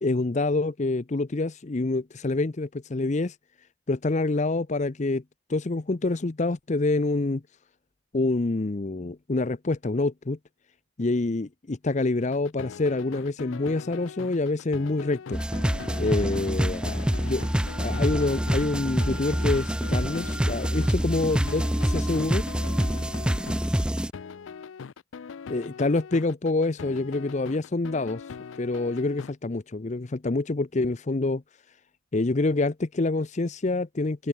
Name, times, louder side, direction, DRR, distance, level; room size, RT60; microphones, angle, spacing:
voice 1, 0.0-3.4 3.9-5.2 5.5-7.4 8.1-10.4 11.0-15.4 16.0-22.4 25.5-28.3 28.6-31.4 32.1-34.3, left 2 dB, 35° left, 0.6 m, -27 dB
sound 1, 12.2-29.3, left 6 dB, 85° left, 0.5 m, -41 dB
sound 2, 15.3-24.1, equal, 5° right, 0.5 m, -26 dB
head